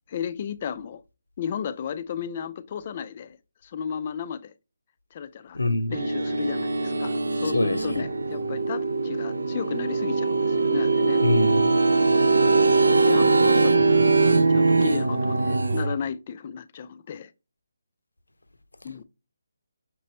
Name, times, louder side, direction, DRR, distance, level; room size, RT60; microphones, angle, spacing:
voice 1, 0.1-1.0 1.4-3.4 3.6-4.5 5.1-5.6 5.9-11.2 13.0-17.3 18.8-19.0, left 7 dB, 35° left, 0.3 m, -34 dB
voice 2, 5.5-6.0 7.5-8.0 11.2-11.8, left 2 dB, 85° left, 0.5 m, -25 dB
sound 1, 5.9-16.0, right 3 dB, 75° right, 0.4 m, -21 dB
5.9 x 3.1 x 2.8 m
figure-of-eight pair, 150°, 0 cm